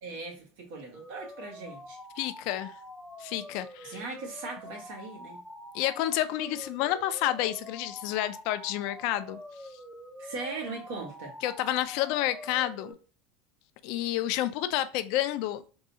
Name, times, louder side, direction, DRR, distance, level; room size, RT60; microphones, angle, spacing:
voice 1, 0.0-2.0 3.8-5.4 10.2-11.3, right 3 dB, 80° right, 1.3 m, -39 dB
sound 1, 0.9-12.9, left 1 dB, ahead, 0.5 m, -46 dB
voice 2, 2.2-2.7 3.2-4.0 5.7-9.4 11.4-12.9 13.8-15.6, left 13 dB, 60° left, 0.3 m, -29 dB
3.6 x 2.3 x 2.7 m
supercardioid pair, 135°, 0 cm